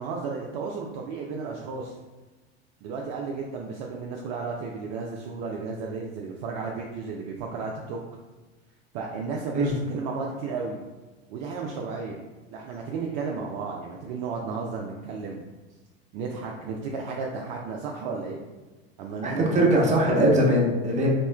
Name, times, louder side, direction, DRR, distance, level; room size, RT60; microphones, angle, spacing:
voice 1, 0.0-1.9 2.8-8.0 8.9-10.8 11.3-12.2 12.5-15.4 16.1-18.4 19.0-20.2, right 4 dB, 50° right, -1 dB, 0.5 m, -33 dB
voice 2, 19.2-21.1, right 1 dB, 20° right, -3 dB, 1.0 m, -21 dB
4.1 x 2.9 x 2.3 m, 1.2 s
figure-of-eight pair, 80°, 32 cm